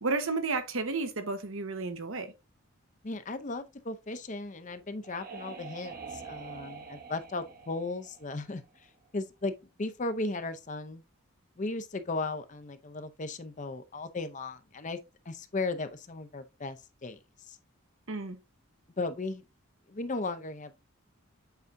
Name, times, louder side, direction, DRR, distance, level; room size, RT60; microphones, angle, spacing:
voice 1, 0.0-2.3 18.1-18.4, right 3 dB, 65° right, 1.0 m, -32 dB
voice 2, 3.0-8.6 9.1-9.5 9.8-11.0 11.6-15.0 15.3-17.2 17.5-17.6 19.0-19.4 19.9-20.7, left 3 dB, 35° left, 0.6 m, -36 dB
sound 1, 4.5-9.1, right 5 dB, 45° right, 1.0 m, -46 dB
8.1 x 4.8 x 2.6 m
head